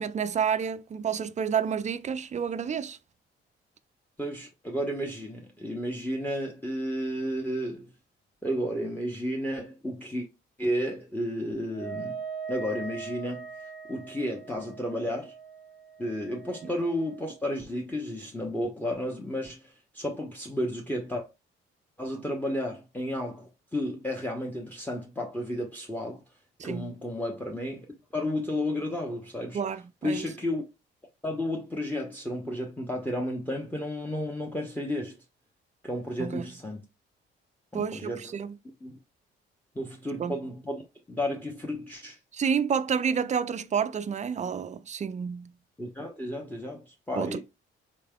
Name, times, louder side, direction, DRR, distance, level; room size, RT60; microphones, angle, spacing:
voice 1, 0.0-3.0 26.6-26.9 29.5-30.3 36.2-36.5 37.7-38.6 40.2-40.4 42.3-45.5 47.2-47.4, right 7 dB, 25° right, 0.3 m, -29 dB
voice 2, 4.2-7.9 8.4-10.3 10.6-12.2 12.5-13.5 13.9-15.3 16.0-21.2 22.0-26.2 26.6-27.9 28.1-29.6 30.0-30.6 31.2-35.2 35.8-36.8 37.7-38.3 38.8-39.0 39.7-40.8 41.1-42.2 45.8-47.4, left 1 dB, 5° left, 0.9 m, -32 dB
Wind instrument woodwind instrument, 11.7-17.4, right 6 dB, 35° left, 1.6 m, -41 dB
3.6 x 3.2 x 2.3 m
hypercardioid pair, 40°, 30 cm